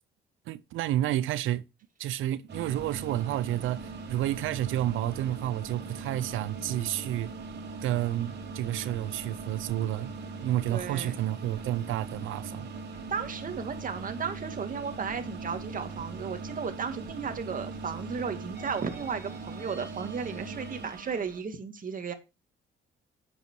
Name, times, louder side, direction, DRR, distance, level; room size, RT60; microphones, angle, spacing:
voice 1, 0.5-1.6 2.0-7.3 7.8-10.1 10.4-12.7, right 13 dB, 80° right, 0.5 m, -30 dB
sound 1, 2.5-21.4, right 4 dB, 60° right, 2.6 m, -40 dB
voice 2, 10.7-11.3 13.1-22.1, right 6 dB, 45° right, 2.0 m, -34 dB
8.2 x 8.0 x 4.5 m
cardioid pair, 90°, 20 cm